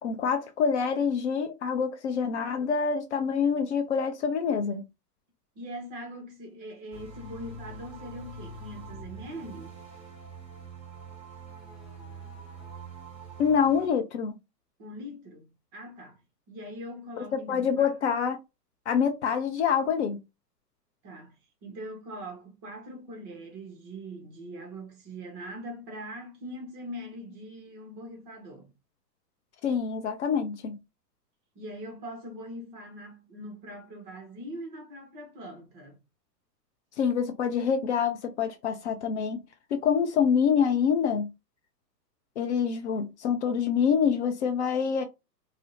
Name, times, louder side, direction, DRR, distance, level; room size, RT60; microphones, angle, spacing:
voice 1, 0.0-4.8 13.4-14.3 17.5-18.4 18.9-20.2 29.6-30.8 37.0-39.4 39.7-41.3 42.4-45.0, left 6 dB, 45° left, 0.5 m, -26 dB
voice 2, 5.6-9.7 14.8-16.2 16.5-17.9 21.0-21.3 21.6-28.7 31.6-36.0, equal, 20° right, 0.6 m, -42 dB
sound 1, 6.9-13.9, right 3 dB, 5° right, 1.2 m, -44 dB
2.6 x 2.0 x 2.5 m
hypercardioid pair, 115°, 50 cm